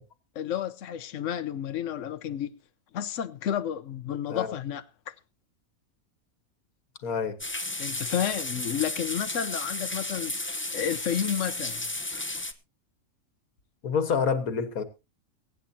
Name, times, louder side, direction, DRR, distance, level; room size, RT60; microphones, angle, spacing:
voice 1, 0.3-2.5 2.9-5.1 7.8-11.9, left 9 dB, 65° left, 1.1 m, -31 dB
voice 2, 7.0-7.4 13.8-14.8, left 6 dB, 80° left, 1.8 m, -27 dB
sound 1, 7.4-12.5, left 2 dB, 10° left, 0.6 m, -33 dB
23.5 x 9.5 x 2.8 m
omnidirectional pair, 1.5 m